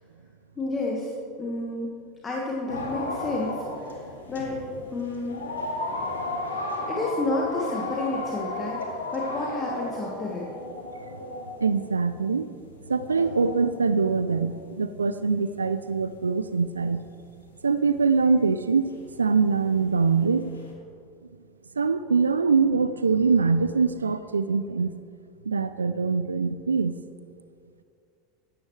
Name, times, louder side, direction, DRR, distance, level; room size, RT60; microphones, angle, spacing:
voice 1, 0.6-1.1 1.4-1.9 2.2-4.0 4.3-4.6 4.9-5.4 6.9-10.5, left 2 dB, 25° left, -3 dB, 1.5 m, -30 dB
sound 1, 2.7-14.5 15.4-15.5 15.8-15.9 16.3-16.4 17.0-17.2 17.5-17.6 17.8-18.4 18.7-20.7, left 2 dB, 85° left, 1.6 m, -34 dB
voice 2, 11.6-12.5 12.9-17.0 17.6-18.9 19.2-20.5 21.8-24.9 25.5-27.0, right 5 dB, 90° right, 13 dB, 0.3 m, -23 dB
14.5 x 9.6 x 3.2 m, 2.4 s
hypercardioid pair, 85°, 0 cm